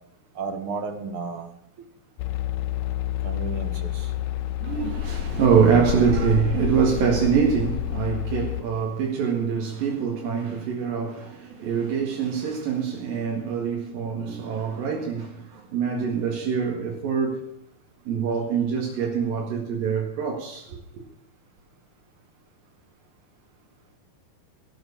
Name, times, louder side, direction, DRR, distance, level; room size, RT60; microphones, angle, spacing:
voice 1, 0.3-1.5 3.2-4.1, right 4 dB, 55° right, 1.6 m, -33 dB
sound 1, 2.2-8.6, left 13 dB, 80° left, 1.6 m, -29 dB
voice 2, 4.6-17.4 18.1-20.8, right 7 dB, 75° right, 3.8 m, -24 dB
18.0 x 8.0 x 7.1 m
omnidirectional pair, 4.2 m